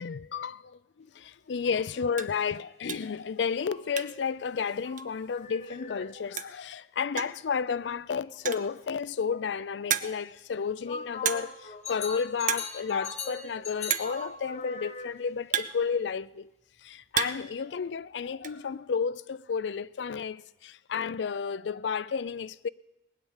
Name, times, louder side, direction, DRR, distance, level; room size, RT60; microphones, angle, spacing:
voice 1, 0.0-16.5 16.8-22.7, left 6 dB, 80° left, 0.4 m, -32 dB
sound 1, 1.2-1.3 1.7-1.8 2.1-2.4 2.9-3.2 3.5-4.3 4.6-4.7 5.0-5.1 6.1-6.2 6.4-6.7 7.2-7.5 8.3-8.8 9.3-9.4 9.9-10.4 11.2-11.7 11.9-12.1 12.4-12.8 13.0-13.1 13.9-14.2 15.0-16.3 16.8-17.6 17.8-18.5, right 9 dB, 45° right, 0.7 m, -32 dB
sound 2, 1.6-2.5 3.6-6.2 10.9-15.4, left 5 dB, 40° left, 1.1 m, -41 dB
19.0 x 9.6 x 7.2 m
head